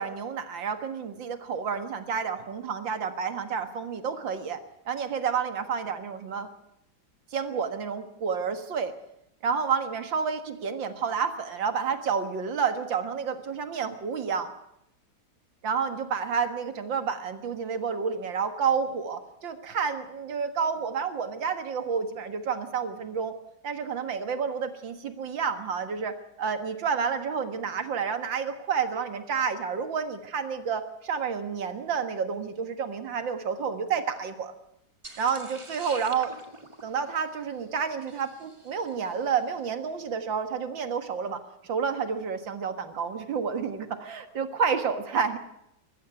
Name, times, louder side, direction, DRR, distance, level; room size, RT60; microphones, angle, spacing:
voice 1, 0.0-4.6 4.9-6.5 7.3-8.9 9.4-14.5 15.6-23.3 23.6-34.5 35.2-36.3 36.8-45.4, right 6 dB, 75° right, 9 dB, 2.3 m, -30 dB
sound 1, 35.0-39.3, right 2 dB, 15° right, 1.6 m, -46 dB
21.5 x 15.0 x 9.2 m, 0.80 s
omnidirectional pair, 2.1 m